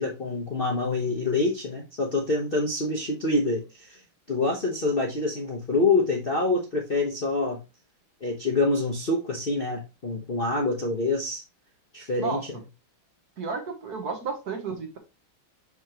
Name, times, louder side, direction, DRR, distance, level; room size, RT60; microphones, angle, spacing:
voice 1, 0.0-4.0 4.3-7.6 8.2-11.4 11.9-12.4, left 2 dB, 40° left, 0.8 m, -26 dB
voice 2, 13.4-15.0, right 5 dB, 55° right, 1.5 m, -32 dB
6.2 x 5.7 x 2.9 m
omnidirectional pair, 2.3 m